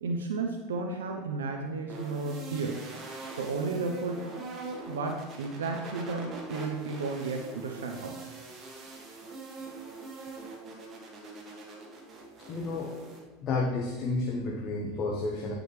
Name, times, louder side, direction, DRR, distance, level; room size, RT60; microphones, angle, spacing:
voice 1, 0.0-2.9 3.4-4.4 4.9-8.2, right 3 dB, 85° right, 3 dB, 0.6 m, -33 dB
sound 1, 1.9-13.2, right 3 dB, 40° right, 1.8 m, -43 dB
voice 2, 12.5-12.9 13.4-15.5, left 3 dB, 45° left, -1 dB, 1.1 m, -31 dB
9.4 x 5.1 x 3.2 m, 1.3 s
hypercardioid pair, 95°, 0 cm